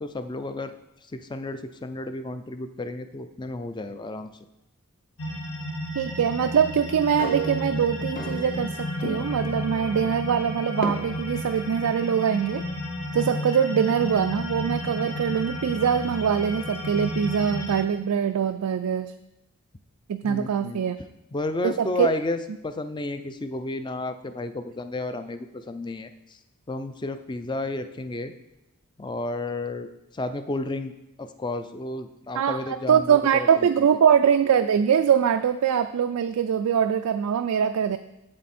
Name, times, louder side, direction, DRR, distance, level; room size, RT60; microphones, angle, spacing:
voice 1, 0.0-0.7 1.1-4.3 20.2-20.8 21.3-26.1 26.7-28.3 29.0-29.9 30.1-30.9 31.2-33.9, left 2 dB, 20° left, 10 dB, 0.4 m, -32 dB
sound 1, 5.2-17.8, left 1 dB, 80° left, 1.3 m, -32 dB
voice 2, 6.0-12.6 13.1-19.1 20.1-21.0 21.6-22.1 32.3-38.0, right 8 dB, 90° right, 8 dB, 0.4 m, -23 dB
sound 2, 7.2-8.8 9.0-9.5 10.8-10.9, right 2 dB, 40° left, 0.8 m, -33 dB
8.2 x 7.7 x 4.2 m, 0.93 s
head